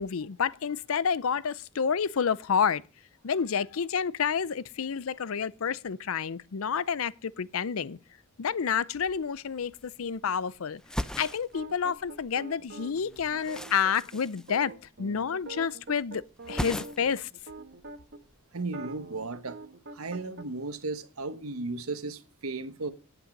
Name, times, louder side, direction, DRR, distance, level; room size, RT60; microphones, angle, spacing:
voice 1, 0.0-2.8 3.2-8.0 8.4-10.8 11.2-14.7 15.0-16.2 16.5-17.3, left 7 dB, 70° left, 0.5 m, -29 dB
sound 1, 9.2-9.3 9.5-10.4 10.7-12.4 12.7-15.2 15.4-16.0 16.2-17.3 17.5-18.3, equal, 5° left, 0.5 m, -38 dB
sound 2, 11.5-18.2 18.6-20.5, right 2 dB, 55° right, 1.3 m, -44 dB
voice 2, 18.5-19.6 19.9-22.9, right 3 dB, 80° right, 1.3 m, -35 dB
10.5 x 9.0 x 5.2 m
head